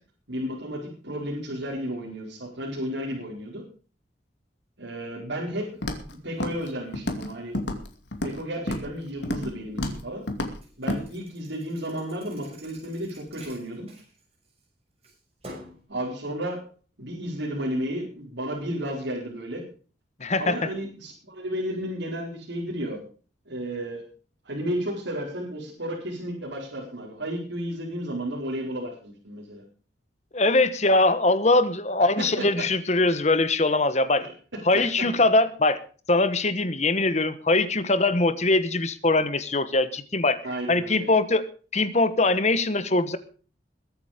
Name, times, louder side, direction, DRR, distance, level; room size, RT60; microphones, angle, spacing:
voice 1, 0.3-3.6 4.8-5.7 6.2-7.6 8.2-10.2 10.8-13.9 15.9-16.6 17.0-19.6 20.4-23.0 23.5-24.0 24.4-29.6 32.2-32.6 34.2-34.3 34.7-34.8 40.4-41.1, equal, 75° right, -4 dB, 4.6 m, -32 dB
Walk footsteps, 5.8-6.1 6.4-6.7 6.9-7.3 7.5-8.4 8.7-8.9 9.2-9.5 9.8-10.0 10.3-10.5 10.9-11.0, left 1 dB, 70° left, 2.5 m, -29 dB
Thump thud, 10.6-14.6 15.0-15.8, equal, 35° right, 6.4 m, -48 dB
voice 2, 20.2-20.7 30.3-34.3 34.7-35.8 36.1-40.4 40.7-41.5 41.7-43.2, left 2 dB, 35° left, 13 dB, 1.2 m, -22 dB
21.5 x 8.8 x 5.1 m, 0.40 s
head